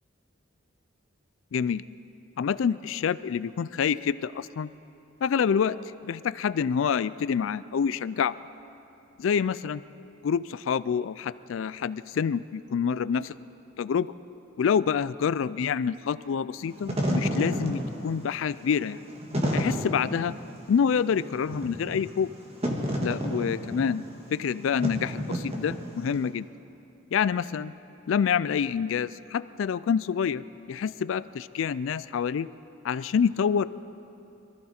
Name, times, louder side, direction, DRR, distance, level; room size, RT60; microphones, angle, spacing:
voice 1, 1.5-1.8 2.4-4.7 5.2-5.8 6.0-8.3 9.2-9.8 10.2-13.3 13.8-14.1 14.6-19.0 19.5-20.4 20.7-22.3 23.0-24.0 24.3-26.5 27.1-27.7 28.1-32.5 32.8-33.6, left 7 dB, 75° left, 16 dB, 0.3 m, -27 dB
Wind / Fire, 16.6-26.2, equal, 30° right, 1.8 m, -31 dB
23.5 x 14.0 x 4.3 m, 2.8 s
head